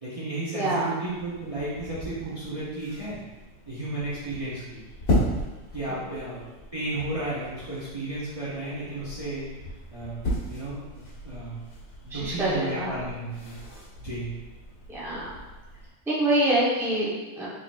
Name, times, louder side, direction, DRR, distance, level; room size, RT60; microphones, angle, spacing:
voice 1, 0.0-3.2 3.7-4.8 5.7-6.4 6.7-9.5 9.9-10.2 10.5-11.6 12.0-13.6 14.0-14.3, right 2 dB, 30° right, -10 dB, 0.9 m, -33 dB
voice 2, 0.5-0.9 5.9-6.0 12.1-12.9 14.9-15.3 16.1-17.5, right 1 dB, ahead, -8 dB, 0.8 m, -26 dB
sound 1, 1.0-15.9, left 1 dB, 75° left, 1.7 m, -35 dB
3.8 x 3.7 x 2.5 m, 1.1 s
omnidirectional pair, 1.3 m